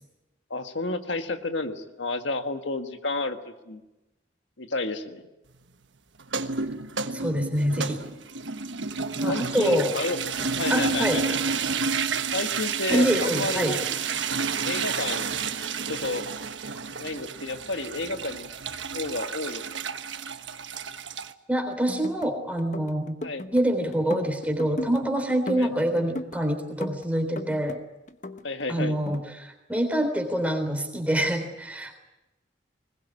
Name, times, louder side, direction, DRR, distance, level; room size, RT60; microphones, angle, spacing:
voice 1, 0.5-3.8 4.6-5.2 9.3-10.2 10.6-11.4 12.3-13.8 14.6-15.3 15.9-16.3 17.0-18.5 18.9-19.6 23.2-23.5 25.5-25.7 28.4-29.0, left 3 dB, 90° left, 7 dB, 1.7 m, -31 dB
sound 1, 6.2-21.3, right 5 dB, 85° right, 1.3 m, -30 dB
voice 2, 7.1-8.0 9.2-9.9 10.4-11.2 12.9-13.8 21.5-23.2 23.5-27.8 28.7-31.9, right 1 dB, 10° right, 5 dB, 3.5 m, -26 dB
sound 2, 21.7-22.3 22.6-23.6 23.9-25.0 25.3-26.4 26.8-27.8 28.1-29.2, left 1 dB, 40° left, 1.0 m, -36 dB
21.0 x 20.5 x 9.8 m, 1.0 s
head